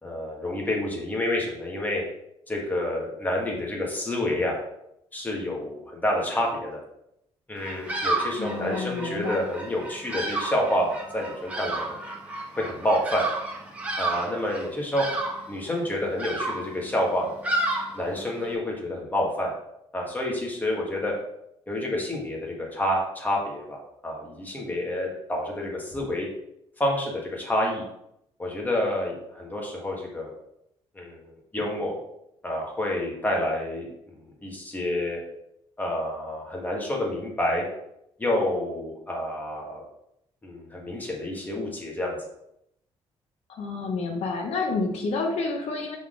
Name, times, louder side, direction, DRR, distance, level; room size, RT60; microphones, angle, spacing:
voice 1, 0.0-2.0 2.5-4.5 5.1-6.8 7.5-11.8 12.5-13.2 14.0-15.1 15.5-17.4 17.9-19.5 19.9-21.1 21.7-26.3 26.8-27.8 28.4-30.3 30.9-31.2 31.5-31.9 32.4-35.2 35.8-37.7 38.2-39.8 40.4-42.2, left 1 dB, 15° left, -2 dB, 1.7 m, -28 dB
Bird vocalization bird call bird song, 7.6-18.5, right 2 dB, 15° right, 1.3 m, -32 dB
voice 2, 8.4-9.5 43.5-46.0, left 3 dB, 75° left, 2 dB, 0.9 m, -29 dB
5.8 x 4.2 x 3.8 m, 0.80 s
cardioid pair, 115°, 11 cm